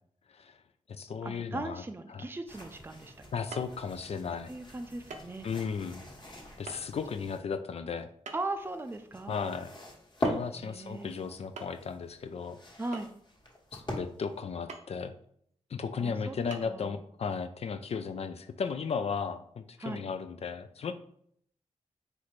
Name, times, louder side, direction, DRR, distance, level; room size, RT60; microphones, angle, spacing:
voice 1, 0.3-0.6 0.9-1.8 2.1-2.3 3.3-4.5 5.4-6.0 6.6-8.1 9.3-9.7 10.2-12.6 13.7-15.1 15.7-20.9, left 6 dB, 60° left, 9 dB, 0.4 m, -35 dB
voice 2, 1.2-3.1 4.5-5.5 8.3-9.3 10.5-11.2 12.8-13.1 15.9-17.0 19.8-20.0, right 2 dB, 20° right, 8 dB, 0.5 m, -38 dB
sound 1, 2.5-7.4 8.4-14.4, left 1 dB, 40° left, 1.4 m, -42 dB
sound 2, 3.5-3.8 5.1-5.3 5.6-5.7 6.7-6.8 8.3-8.6 10.2-10.5 10.8-10.9 11.6-11.9 12.9-13.4 14.7-14.9 15.5-15.6 16.5-16.6, right 4 dB, 75° right, 0.6 m, -44 dB
4.1 x 3.3 x 3.2 m, 0.66 s
cardioid pair, 55°, 12 cm